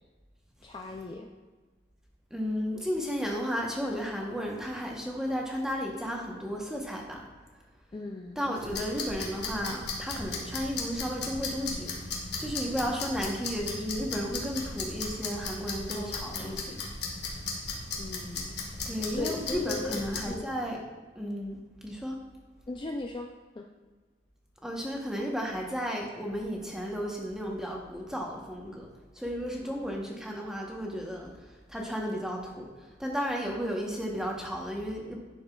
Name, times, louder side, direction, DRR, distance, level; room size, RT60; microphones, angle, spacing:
voice 1, 0.6-1.3 7.9-8.4 15.9-16.6 18.0-18.6 19.1-20.0 20.3-20.5 22.7-23.3 23.5-23.7 29.6-29.9, left 2 dB, 25° left, 2 dB, 0.3 m, -38 dB
voice 2, 2.3-7.2 8.4-11.9 12.4-16.8 18.9-20.8 21.1-21.6 21.8-22.2 24.6-28.9 29.1-31.3 31.7-32.7 33.0-35.2, equal, 5° right, -1 dB, 0.9 m, -33 dB
sound 1, 8.5-20.3, left 3 dB, 65° left, 1.4 m, -36 dB
9.8 x 6.4 x 2.3 m, 1.4 s
head